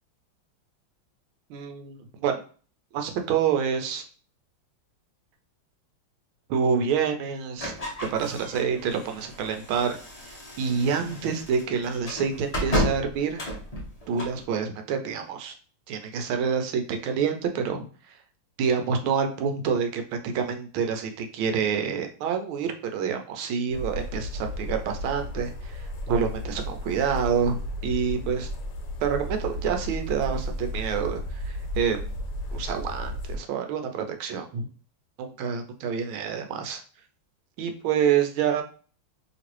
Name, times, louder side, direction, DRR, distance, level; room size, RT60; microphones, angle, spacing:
voice 1, 1.5-2.3 2.9-4.0 6.5-7.7 8.1-10.0 10.6-13.4 14.1-15.5 15.9-17.9 18.6-28.5 29.0-32.1 32.5-34.7 35.2-36.8 37.6-38.6, right 7 dB, 80° right, 5 dB, 1.4 m, -27 dB
sound 1, 7.6-14.4, equal, 45° left, 0.4 m, -33 dB
sound 2, 23.7-33.4, left 1 dB, 70° left, 1.4 m, -34 dB
3.2 x 2.9 x 3.0 m, 0.40 s
omnidirectional pair, 2.2 m